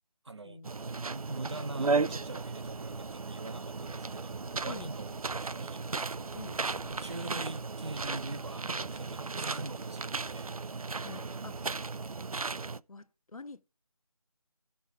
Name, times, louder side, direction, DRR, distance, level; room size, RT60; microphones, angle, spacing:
voice 1, 0.2-5.8 6.8-10.5, right 2 dB, 50° right, 0.8 m, -43 dB
sound 1, 0.6-12.8, right 4 dB, 75° right, 0.5 m, -35 dB
sound 2, 2.4-8.6, left 2 dB, 35° left, 0.7 m, -58 dB
voice 2, 11.1-11.6 12.9-13.6, left 3 dB, 70° left, 0.8 m, -46 dB
16.5 x 6.3 x 3.4 m
figure-of-eight pair, 165°, 19 cm